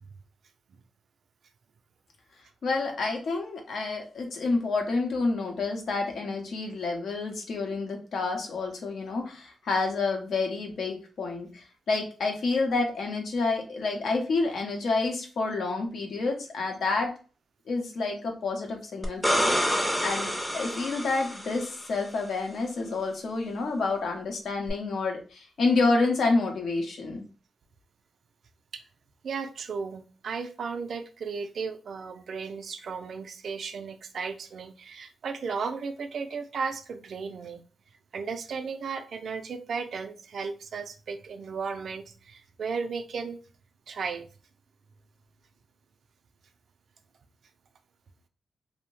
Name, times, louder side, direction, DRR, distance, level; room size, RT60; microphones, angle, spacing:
voice 1, 2.6-17.1 17.7-27.2, left 3 dB, 70° left, 2 dB, 0.7 m, -29 dB
sound 1, 19.0-21.9 24.7-24.8, equal, 5° left, 0.5 m, -27 dB
voice 2, 29.2-37.6 38.1-43.4 43.9-44.3, right 5 dB, 65° right, 7 dB, 0.3 m, -35 dB
2.6 x 2.0 x 3.0 m, 0.37 s
cardioid pair, 90°, 0 cm